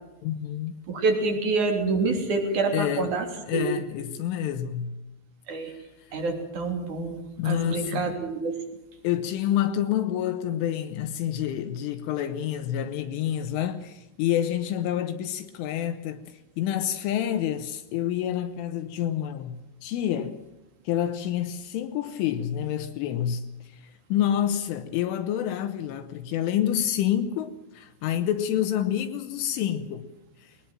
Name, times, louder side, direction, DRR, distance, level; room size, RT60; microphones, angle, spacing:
voice 1, 0.2-0.8 2.7-3.1 3.5-5.0 5.7-5.8 7.4-8.1 9.0-16.2 16.6-20.4 20.9-23.4 23.7-23.8 24.1-30.1, left 10 dB, 75° left, 3.4 m, -28 dB
voice 2, 0.9-3.3 3.5-3.6 5.5-5.7 6.1-8.6, right 3 dB, 40° right, 4.1 m, -27 dB
21.0 x 20.0 x 7.4 m
omnidirectional pair, 5.9 m